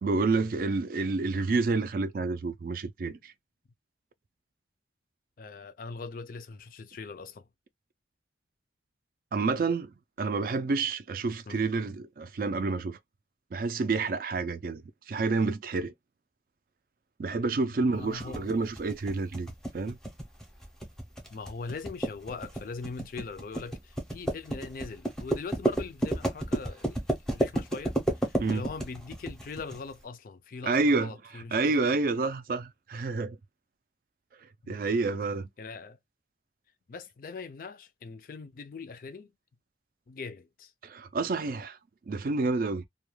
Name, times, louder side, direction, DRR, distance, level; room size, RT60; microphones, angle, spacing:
voice 1, 0.0-3.3 9.3-9.9 10.2-13.0 13.5-15.9 17.2-19.5 19.7-20.0 28.4-28.6 30.6-33.4 34.7-35.5 40.8-41.8 42.1-42.8, right 3 dB, 50° right, 0.3 m, -29 dB
voice 2, 5.4-7.5 11.5-11.6 17.7-18.5 21.3-27.0 27.3-32.0 34.6-35.2 35.6-36.0 36.9-39.3 40.1-40.7, left 4 dB, 50° left, 0.4 m, -41 dB
sound 1, 18.2-29.8, right 1 dB, 5° left, 0.6 m, -31 dB
2.2 x 2.1 x 3.1 m
head